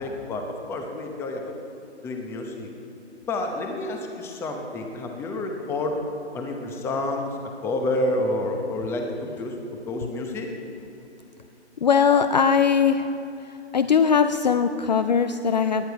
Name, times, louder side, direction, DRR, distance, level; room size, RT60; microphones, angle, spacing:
voice 1, 0.0-1.5 2.0-2.7 3.3-6.0 6.3-9.6 9.9-10.5, left 2 dB, 5° left, 3 dB, 0.8 m, -29 dB
voice 2, 11.8-13.1 13.4-15.8, left 6 dB, 40° left, 10 dB, 0.5 m, -20 dB
19.0 x 10.5 x 4.7 m, 2.8 s
figure-of-eight pair, 145°, 35 cm